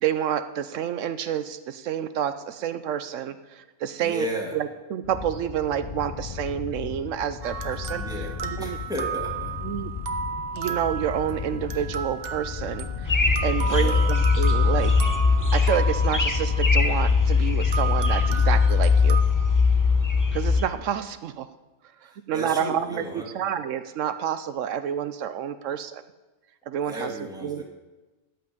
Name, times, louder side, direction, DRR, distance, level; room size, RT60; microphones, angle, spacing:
voice 1, 0.0-4.3 4.5-8.8 9.6-9.9 10.5-14.9 15.5-19.2 20.3-21.5 22.0-26.0 26.7-27.1 27.4-27.6, right 9 dB, 80° right, 11 dB, 1.0 m, -29 dB
voice 2, 4.0-4.6 7.9-9.5 13.6-14.1 22.3-23.3 26.8-27.6, equal, 5° right, -2 dB, 2.1 m, -34 dB
sound 1, 5.0-19.3, left 7 dB, 50° left, 0.4 m, -36 dB
sound 2, 7.4-17.1 17.7-19.2, right 6 dB, 55° right, 1.0 m, -34 dB
sound 3, 13.1-20.6, left 5 dB, 20° left, 0.8 m, -21 dB
13.5 x 5.6 x 9.4 m, 1.2 s
omnidirectional pair, 1.3 m